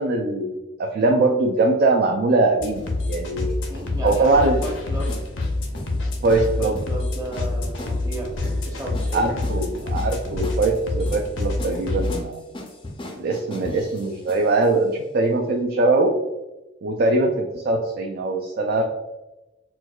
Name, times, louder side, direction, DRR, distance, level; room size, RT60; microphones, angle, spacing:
voice 1, 0.0-3.6 4.0-4.6 6.2-6.8 9.1-12.4 13.2-16.1 16.8-18.8, right 2 dB, 50° right, 1 dB, 0.3 m, -21 dB
sound 1, 2.6-12.2, left 2 dB, 70° left, 0.6 m, -27 dB
sound 2, 2.7-14.7, left 1 dB, 25° left, 0.4 m, -38 dB
voice 2, 3.7-5.1 6.1-6.2 6.6-9.4 9.6-9.9, right 1 dB, 20° right, -2 dB, 0.7 m, -34 dB
4.4 x 2.2 x 2.3 m, 1.0 s
head